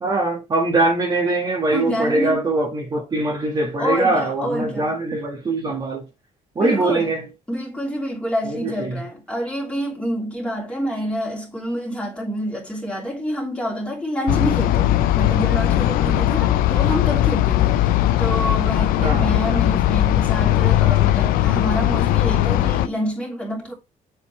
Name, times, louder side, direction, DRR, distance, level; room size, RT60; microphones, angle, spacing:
voice 1, 0.0-6.1 6.5-7.3 8.5-9.0 19.0-19.3, right 2 dB, 30° right, 1.5 m, -22 dB
voice 2, 1.7-2.4 3.8-4.9 6.6-7.1 7.5-17.8 18.2-23.7, equal, 10° left, 3.1 m, -27 dB
sound 1, 14.3-22.9, left 13 dB, 85° left, 0.6 m, -18 dB
7.5 x 4.3 x 3.2 m
cardioid pair, 135°, 14 cm